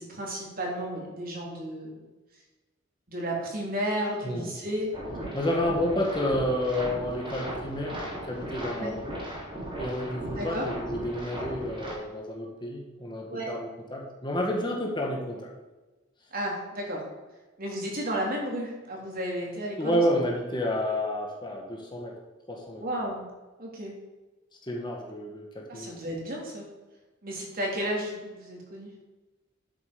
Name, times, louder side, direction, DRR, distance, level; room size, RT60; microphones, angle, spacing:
voice 1, 0.0-2.0 3.1-4.9 8.8-8.9 10.4-10.6 13.3-13.5 16.3-17.0 17.6-20.0 22.8-23.2 23.6-23.9 25.7-26.6 27.2-28.9, right 1 dB, 45° right, -2 dB, 3.4 m, -33 dB
sound 1, 4.9-11.9, right 1 dB, 25° right, 3.4 m, -37 dB
voice 2, 5.3-9.0 9.8-15.5 19.7-22.2 22.5-22.8 24.5-25.9, left 1 dB, 25° left, 0 dB, 1.8 m, -30 dB
11.0 x 8.5 x 5.2 m, 1.2 s
head